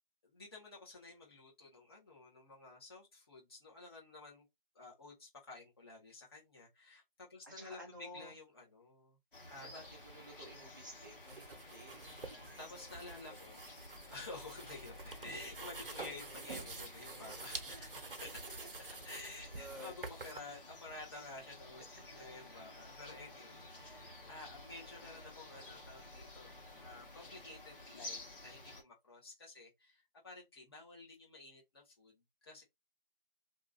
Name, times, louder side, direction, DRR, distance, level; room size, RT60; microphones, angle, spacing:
voice 1, 0.2-4.4 4.7-9.2 9.5-9.8 12.1-18.4 19.0-32.6, left 3 dB, 25° left, 1.3 m, -52 dB
voice 2, 7.4-8.3 9.6-12.5 13.3-13.4 19.5-20.0 22.2-22.3, equal, 20° right, 0.8 m, -53 dB
sound 1, 9.3-28.8, left 2 dB, 65° left, 1.4 m, -53 dB
sound 2, 11.2-20.4, right 3 dB, 65° right, 0.8 m, -48 dB
Piano, 11.9-12.7, right 3 dB, 85° right, 1.0 m, -63 dB
3.0 x 2.6 x 2.6 m
figure-of-eight pair, 160°, 29 cm